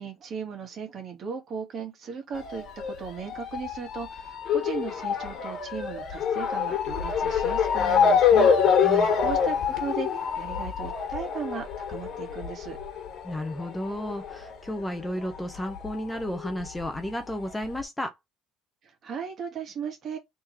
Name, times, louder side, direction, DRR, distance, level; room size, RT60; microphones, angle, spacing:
voice 1, 0.0-8.5 9.2-12.8 18.8-20.2, right 6 dB, 45° right, 1.7 m, -37 dB
Motor vehicle (road) / Siren, 2.4-15.4 15.6-16.8 17.5-17.6 17.8-17.9, left 7 dB, 55° left, 1.7 m, -26 dB
voice 2, 8.8-9.1 13.2-18.1, left 1 dB, 10° left, 0.8 m, -33 dB
3.6 x 3.0 x 4.3 m
supercardioid pair, 100°, 0 cm